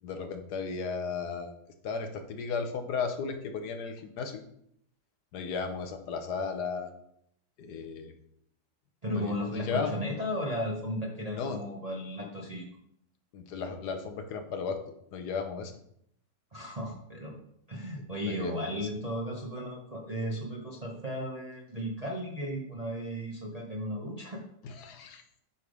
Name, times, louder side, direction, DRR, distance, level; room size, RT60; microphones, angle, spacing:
voice 1, 0.0-1.5 1.8-4.4 5.3-6.9 7.6-8.1 9.1-10.0 11.3-11.6 13.3-14.8 15.1-15.8 18.2-18.9 24.6-25.2, left 5 dB, 70° left, 6 dB, 1.4 m, -35 dB
voice 2, 9.0-12.7 16.5-17.4 17.7-24.4, equal, 35° right, -1 dB, 0.6 m, -35 dB
8.2 x 3.4 x 5.2 m, 0.70 s
omnidirectional pair, 1.8 m